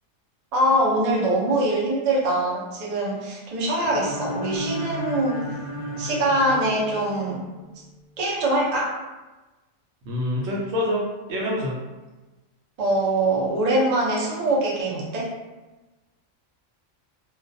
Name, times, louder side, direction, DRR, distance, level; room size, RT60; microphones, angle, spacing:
voice 1, 0.5-5.5 6.0-7.4 8.2-9.0 12.8-15.3, right 1 dB, 50° right, -5 dB, 0.5 m, -23 dB
sound 1, 3.7-7.6, right 1 dB, 50° left, 0.6 m, -33 dB
voice 2, 10.0-11.0 11.3-11.7, left 1 dB, 65° right, -3 dB, 0.8 m, -26 dB
2.3 x 2.2 x 2.6 m, 1.1 s
omnidirectional pair, 1.3 m